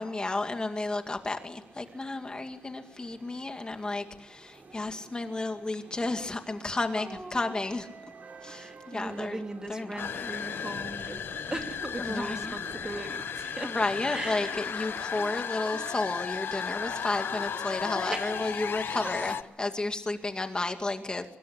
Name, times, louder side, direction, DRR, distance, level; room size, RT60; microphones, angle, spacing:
voice 1, 0.0-7.9 8.4-10.3 12.0-12.6 13.6-21.3, left 2 dB, 25° left, 5 dB, 2.2 m, -32 dB
sound 1, 1.5-19.4, right 3 dB, 45° right, 4.1 m, -50 dB
voice 2, 6.9-7.8 8.5-11.2 11.5-14.6 18.1-18.5 19.0-19.1, right 2 dB, 20° right, 5 dB, 2.5 m, -39 dB
sound 2, 10.0-19.4, left 7 dB, 75° left, 1.0 m, -35 dB
25.0 x 21.5 x 8.5 m, 0.88 s
wide cardioid pair, 140°, 4 cm